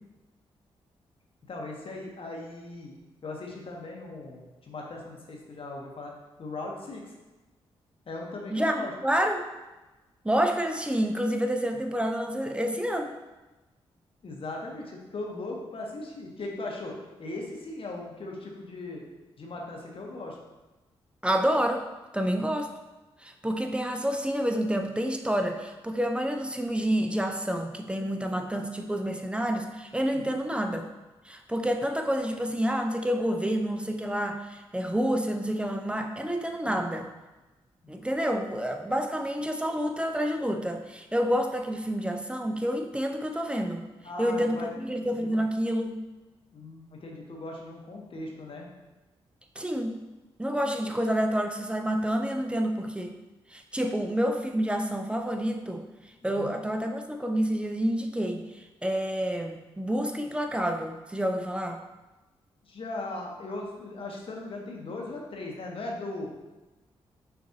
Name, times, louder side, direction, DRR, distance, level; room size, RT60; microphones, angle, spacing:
voice 1, 1.5-2.9 3.2-6.1 6.4-7.1 8.1-8.9 14.2-16.9 17.2-19.0 19.4-20.4 36.7-36.8 44.0-44.7 45.2-45.4 46.5-48.7 53.8-54.0 56.2-56.5 62.7-66.3, left 2 dB, 55° left, -1 dB, 1.0 m, -38 dB
voice 2, 8.5-9.5 10.2-13.2 21.2-21.9 22.1-22.7 23.2-30.9 31.3-37.1 37.9-43.8 44.2-46.0 49.6-50.0 50.4-53.1 53.5-55.8 56.2-61.8, equal, 10° right, 5 dB, 0.5 m, -28 dB
5.8 x 2.6 x 2.7 m, 1.1 s
supercardioid pair, 55°, 11 cm